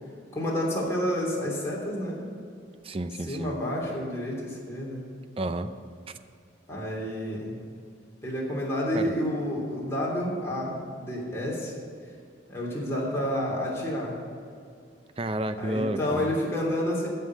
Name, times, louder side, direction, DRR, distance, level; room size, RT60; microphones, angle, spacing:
voice 1, 0.3-2.2 3.2-5.0 6.7-7.5 8.2-11.7 12.5-14.1 15.6-17.1, left 1 dB, 15° left, -4 dB, 3.0 m, -29 dB
voice 2, 2.8-3.5 5.4-5.7 8.9-9.1 15.2-16.3, right 1 dB, 30° right, 10 dB, 0.5 m, -30 dB
14.0 x 5.7 x 7.5 m, 2.4 s
head